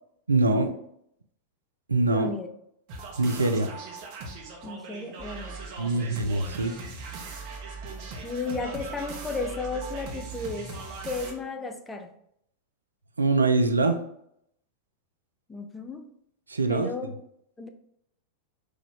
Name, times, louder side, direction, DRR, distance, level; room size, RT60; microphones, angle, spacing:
voice 1, 0.3-0.7 1.9-2.3 3.2-3.7 5.8-6.8 13.2-14.0 16.5-16.9, right 3 dB, 80° right, 6 dB, 0.4 m, -23 dB
voice 2, 2.1-2.5 4.6-6.1 8.2-10.7 11.0-12.1 15.5-16.1 16.7-17.2 17.6-17.7, left 3 dB, 10° left, 6 dB, 0.4 m, -34 dB
sound 1, 2.9-11.3, right 4 dB, 45° right, 0.9 m, -39 dB
4.5 x 2.3 x 3.3 m, 0.72 s
figure-of-eight pair, 90°, 0 cm